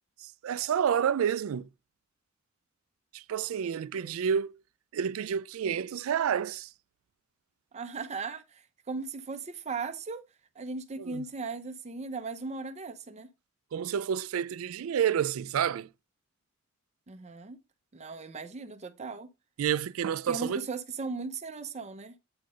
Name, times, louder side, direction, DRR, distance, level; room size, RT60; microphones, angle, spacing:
voice 1, 0.2-1.7 3.1-4.6 4.9-6.7 11.0-11.3 13.7-15.9 19.6-20.6, right 8 dB, 80° right, 0.3 m, -29 dB
voice 2, 3.6-4.1 7.7-10.2 10.6-13.3 17.1-17.6 17.9-19.3 20.3-22.1, right 4 dB, 35° right, 0.6 m, -38 dB
8.7 x 3.7 x 5.0 m
head